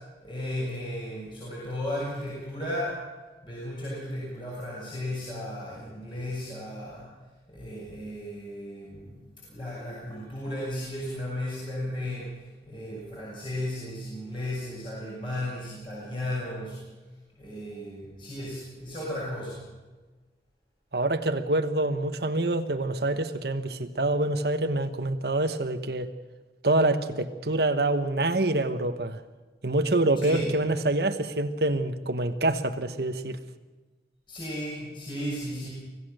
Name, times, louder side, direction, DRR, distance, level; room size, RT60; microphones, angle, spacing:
voice 1, 0.2-3.0 3.4-7.1 7.5-9.2 9.4-12.3 12.6-16.8 17.4-19.6 30.2-30.5 34.3-35.7, left 1 dB, 30° left, -6 dB, 6.6 m, -35 dB
voice 2, 20.9-26.1 26.6-29.2 29.6-33.4, right 2 dB, 65° right, 9 dB, 1.2 m, -26 dB
25.0 x 17.0 x 6.6 m, 1.3 s
head